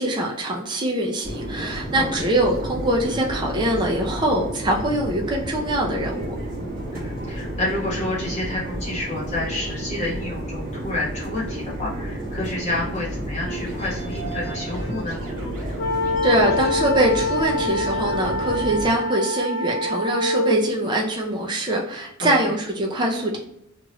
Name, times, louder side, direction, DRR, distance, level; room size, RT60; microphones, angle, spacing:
voice 1, 0.0-6.3 16.2-23.4, right 1 dB, 20° right, -1 dB, 0.4 m, -23 dB
sound 1, 1.2-18.9, right 1 dB, 40° right, 1.2 m, -31 dB
voice 2, 2.0-2.3 6.9-15.2 22.2-22.3, left 2 dB, 30° left, -6 dB, 1.0 m, -29 dB
sound 2, 13.5-18.5, right 2 dB, 65° right, 1.4 m, -38 dB
sound 3, 15.8-20.7, left 2 dB, 70° left, 0.4 m, -25 dB
2.9 x 2.4 x 2.9 m, 0.79 s
head